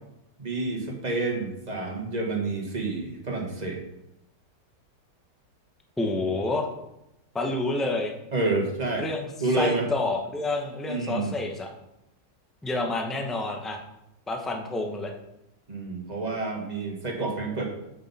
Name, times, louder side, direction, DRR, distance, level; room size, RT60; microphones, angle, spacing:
voice 1, 0.4-3.8 8.3-9.1 9.4-9.8 10.9-11.3 15.7-17.7, right 3 dB, 25° right, 0 dB, 1.5 m, -29 dB
voice 2, 6.0-6.7 7.3-8.1 9.0-11.7 12.6-13.8 14.3-15.1, left 2 dB, ahead, 2 dB, 0.5 m, -29 dB
7.8 x 7.6 x 4.2 m, 0.86 s
omnidirectional pair, 1.9 m